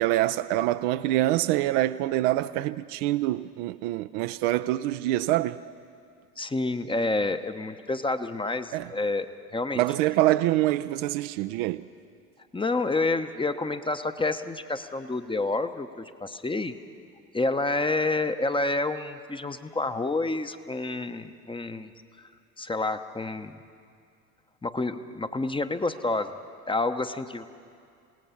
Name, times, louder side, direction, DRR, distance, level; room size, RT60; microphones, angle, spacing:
voice 1, 0.0-5.6 8.7-8.9 9.8-11.8, right 15 dB, 55° right, 0.6 m, -25 dB
voice 2, 6.4-9.8 12.5-16.7 17.3-21.9 22.2-22.3 22.6-23.6 24.6-26.3 26.7-27.5, left 2 dB, 10° left, 0.9 m, -29 dB
28.0 x 18.0 x 5.7 m
figure-of-eight pair, 65°, 46 cm